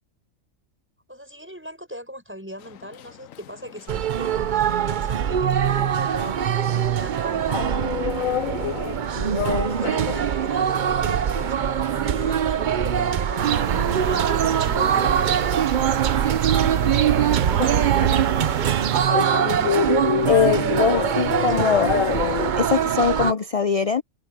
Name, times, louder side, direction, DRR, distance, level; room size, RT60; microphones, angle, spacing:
voice 1, 1.1-4.3 4.8-6.5 6.7-7.9 9.4-15.4 16.4-17.9 21.0-22.2, equal, 10° right, 6.8 m, -40 dB
sound 1, 2.6-22.5, left 9 dB, 90° left, 1.1 m, -30 dB
sound 2, 3.9-23.3, right 9 dB, 50° right, 0.6 m, -23 dB
sound 3, 13.4-19.1, right 9 dB, 75° right, 1.2 m, -26 dB
voice 2, 20.2-21.9 22.6-24.0, left 6 dB, 55° left, 0.4 m, -21 dB
omnidirectional pair, 1.3 m